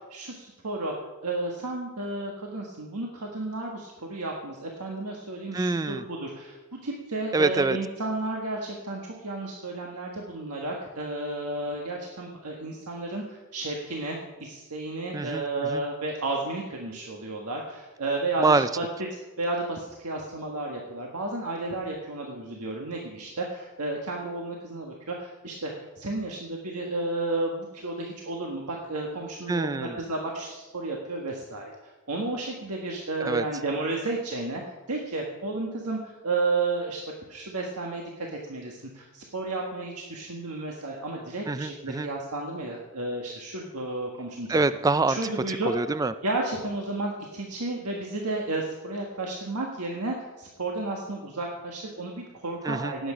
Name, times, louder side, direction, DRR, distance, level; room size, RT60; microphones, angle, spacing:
voice 1, 0.1-0.9 1.2-18.9 19.4-25.7 26.0-34.6 34.9-37.0 37.3-44.5 45.1-45.7 46.2-53.1, right 2 dB, 85° right, 0 dB, 1.5 m, -32 dB
voice 2, 5.5-6.0 7.3-7.8 15.1-15.8 18.4-18.7 29.5-30.0 33.2-33.4 41.5-42.1 44.5-45.2 45.5-46.1 52.6-52.9, right 3 dB, 15° right, 13 dB, 0.3 m, -25 dB
17.0 x 8.1 x 5.1 m, 1.2 s
head